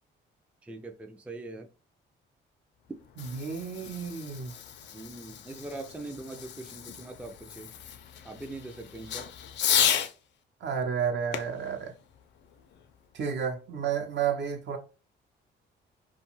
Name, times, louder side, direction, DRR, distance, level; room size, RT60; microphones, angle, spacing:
voice 1, 0.6-1.7 4.9-7.7 8.2-9.3, right 2 dB, 5° right, 0.3 m, -42 dB
Fireworks, 2.9-10.1 11.3-13.0, left 9 dB, 65° left, 0.4 m, -33 dB
voice 2, 3.2-4.5 10.6-11.9 13.1-14.8, right 7 dB, 65° right, 0.7 m, -31 dB
2.5 x 2.3 x 3.0 m
cardioid pair, 90°, 20 cm